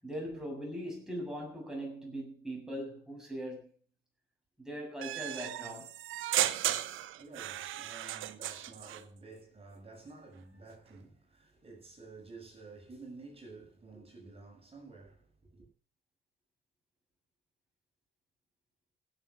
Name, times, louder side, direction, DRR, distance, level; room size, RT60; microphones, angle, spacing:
voice 1, 0.0-3.7 4.6-6.0, equal, 5° right, 7.1 m, -40 dB
sound 1, 5.0-9.0, right 13 dB, 85° right, 1.1 m, -35 dB
voice 2, 7.2-15.7, right 3 dB, 30° right, 6.7 m, -51 dB
16.0 x 8.2 x 6.2 m
cardioid pair, 90°, 20 cm